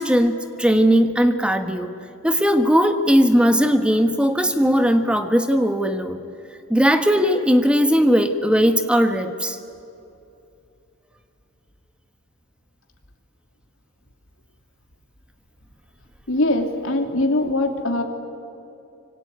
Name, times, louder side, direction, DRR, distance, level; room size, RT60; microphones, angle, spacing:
voice 1, 0.0-1.9 2.2-6.2 6.7-9.6, equal, 5° right, 8 dB, 1.4 m, -18 dB
voice 2, 16.3-18.0, left 1 dB, 70° left, 4 dB, 3.0 m, -22 dB
25.0 x 25.0 x 9.5 m, 2.7 s
head